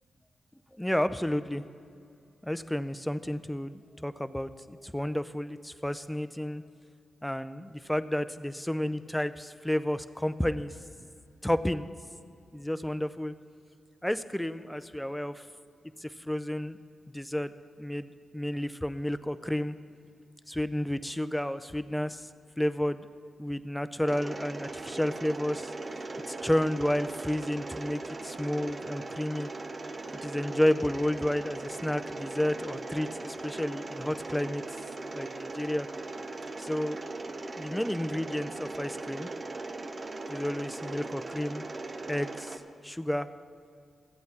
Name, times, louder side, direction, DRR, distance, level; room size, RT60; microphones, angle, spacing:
voice 1, 0.8-1.6 2.4-6.6 7.2-10.7 11.4-11.9 12.5-13.3 14.0-15.4 16.0-16.8 17.1-17.5 17.8-19.8 20.5-22.3 22.6-23.1 23.4-25.7 26.3-29.5 30.2-34.6 35.1-35.9 36.6-37.0 37.6-39.3 40.3-41.6 42.1-42.6 42.8-43.3, left 1 dB, 5° left, 12 dB, 0.5 m, -31 dB
Mechanisms, 24.1-42.6, right 2 dB, 45° right, 0.7 m, -39 dB
14.5 x 8.4 x 4.1 m, 2.5 s
supercardioid pair, 45°, 0 cm